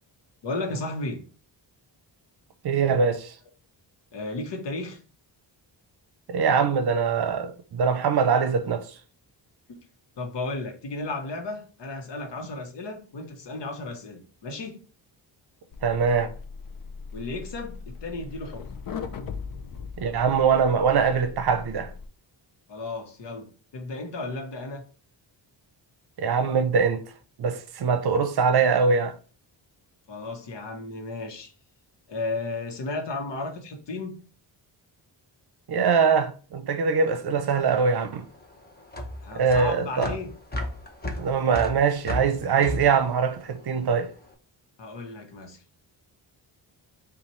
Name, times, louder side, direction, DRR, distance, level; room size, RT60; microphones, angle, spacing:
voice 1, 0.4-1.2 4.1-5.0 9.7-9.8 10.2-14.8 17.1-18.7 22.7-24.8 30.1-31.5 32.1-34.2 39.2-40.3 44.8-45.6, left 2 dB, 65° left, 1.1 m, -34 dB
voice 2, 2.6-3.3 6.3-8.9 15.8-16.3 20.0-21.9 26.2-27.0 27.4-29.1 35.7-38.2 39.3-40.1 41.2-44.1, right 6 dB, 55° right, 0.7 m, -23 dB
sound 1, 15.7-22.1, left 5 dB, 50° left, 0.6 m, -39 dB
sound 2, 37.6-44.1, left 1 dB, 20° left, 0.8 m, -34 dB
5.4 x 2.5 x 3.1 m
cardioid pair, 95°, 46 cm